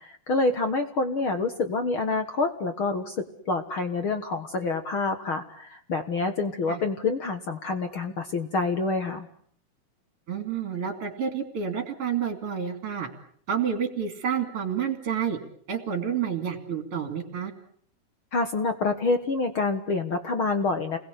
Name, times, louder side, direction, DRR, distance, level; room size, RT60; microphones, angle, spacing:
voice 1, 0.0-9.3 18.3-21.0, left 3 dB, 50° left, 7 dB, 1.6 m, -27 dB
voice 2, 10.3-13.1 13.5-15.4 15.7-17.5, right 7 dB, 40° right, 7 dB, 3.3 m, -29 dB
29.5 x 21.0 x 8.3 m, 0.62 s
omnidirectional pair, 4.3 m